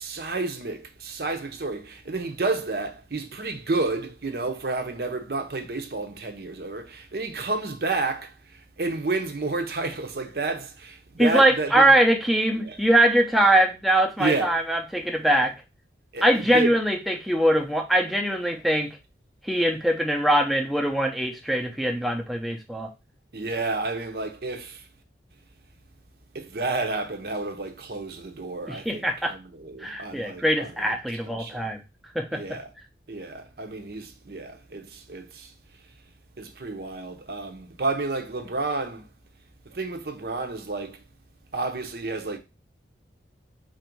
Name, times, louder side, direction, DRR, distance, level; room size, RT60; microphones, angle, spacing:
voice 1, 0.0-8.3 8.8-11.9 12.6-12.8 14.2-14.5 16.1-16.3 16.5-16.7 23.3-24.8 26.3-30.9 31.2-31.6 32.3-32.7 33.1-35.5 36.4-39.0 39.7-41.0 41.5-42.4, right 3 dB, 55° right, 0.7 m, -30 dB
voice 2, 11.2-15.5 16.2-19.0 19.4-22.9 28.7-29.3 29.8-31.8 32.1-32.4, right 1 dB, ahead, 0.5 m, -22 dB
4.4 x 2.6 x 4.4 m
head